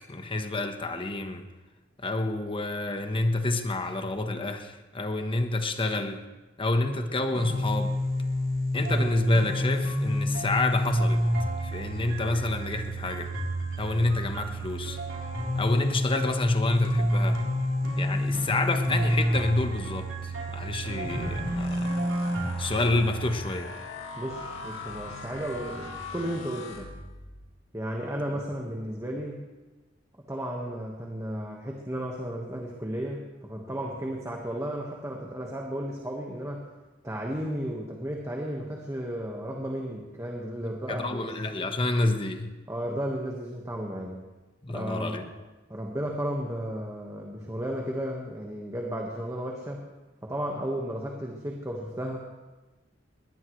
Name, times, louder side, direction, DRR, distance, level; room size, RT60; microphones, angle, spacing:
voice 1, 0.1-1.5 2.0-6.2 6.6-8.0 8.7-11.2 11.6-13.3 13.8-15.0 15.5-17.4 18.0-22.1 22.6-23.7 40.9-42.5 44.6-45.3, left 2 dB, 25° left, 6 dB, 1.2 m, -28 dB
sound 1, 7.3-23.4, equal, 75° right, 3.9 m, -28 dB
sound 2, 21.0-27.5, left 3 dB, 85° left, 2.0 m, -41 dB
voice 2, 24.2-26.9 27.7-29.4 30.3-36.6 37.0-41.3 42.7-44.2 44.7-45.2 45.7-49.8 50.2-52.2, equal, 15° right, -1 dB, 1.5 m, -34 dB
21.5 x 18.0 x 3.2 m, 1.2 s
head